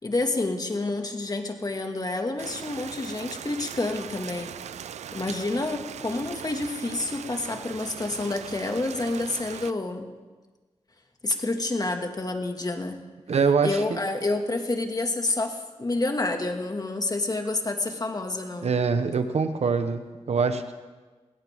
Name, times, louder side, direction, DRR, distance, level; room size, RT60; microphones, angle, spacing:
voice 1, 0.0-4.5 5.1-10.1 11.2-13.0 13.6-18.7, left 2 dB, 35° left, 4 dB, 2.2 m, -28 dB
Rain, 2.4-9.7, right 9 dB, 90° right, 0.4 m, -40 dB
voice 2, 13.3-14.0 18.6-20.7, right 5 dB, 70° right, 8 dB, 1.2 m, -24 dB
22.0 x 17.0 x 3.7 m, 1.3 s
cardioid pair, 55°, 11 cm